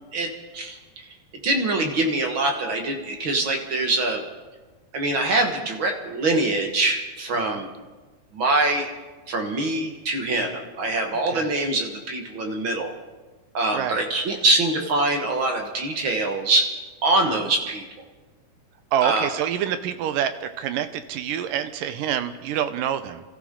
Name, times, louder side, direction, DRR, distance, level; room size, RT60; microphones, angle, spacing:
voice 1, 0.1-0.8 1.4-4.2 4.9-7.7 8.3-8.9 9.3-12.9 13.5-16.7 17.0-17.8 19.0-19.3, right 2 dB, 45° right, 2 dB, 1.8 m, -24 dB
voice 2, 13.7-14.0 17.2-17.5 18.9-23.2, right 10 dB, 80° right, 10 dB, 2.4 m, -27 dB
27.0 x 14.5 x 3.8 m, 1.2 s
omnidirectional pair, 3.8 m